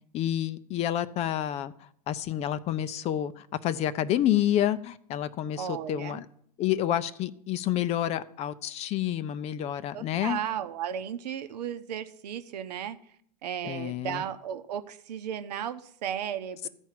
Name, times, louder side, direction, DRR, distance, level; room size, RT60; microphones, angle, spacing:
voice 1, 0.1-1.7 2.1-6.3 6.6-10.4 13.6-14.2, left 11 dB, 30° left, 15 dB, 0.5 m, -29 dB
voice 2, 5.6-6.2 9.9-13.0 13.4-16.7, right 9 dB, 80° right, 9 dB, 0.9 m, -35 dB
13.5 x 4.5 x 7.5 m, 0.65 s
supercardioid pair, 130°, 21 cm